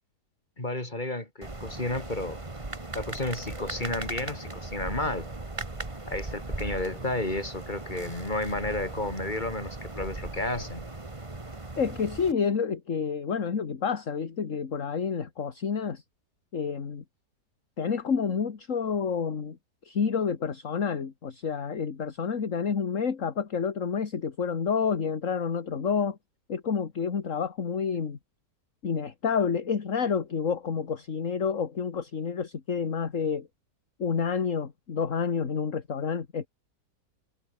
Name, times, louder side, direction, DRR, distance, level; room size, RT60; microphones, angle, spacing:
voice 1, 0.6-2.4 2.9-5.3 6.1-10.9, left 2 dB, 25° left, 4.6 m, -32 dB
sound 1, 1.4-12.3, right 2 dB, 20° right, 1.9 m, -38 dB
voice 2, 11.8-16.0 16.5-17.0 17.8-19.6 19.8-26.2 26.5-28.2 28.8-33.5 34.0-36.5, left 6 dB, 50° left, 2.0 m, -29 dB
omnidirectional pair, 1.8 m